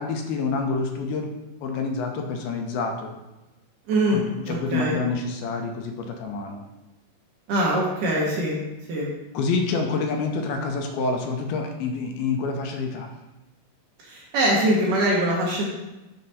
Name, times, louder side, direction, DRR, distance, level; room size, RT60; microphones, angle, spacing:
voice 1, 0.0-1.3 1.6-3.1 4.1-6.6 9.3-13.1, left 4 dB, 80° left, 4 dB, 2.3 m, -27 dB
voice 2, 3.9-4.2 4.5-5.0 7.5-8.6 8.9-9.1 14.0-15.6, right 1 dB, 75° right, -3 dB, 2.1 m, -23 dB
6.4 x 2.9 x 5.3 m, 1.0 s
omnidirectional pair, 4.5 m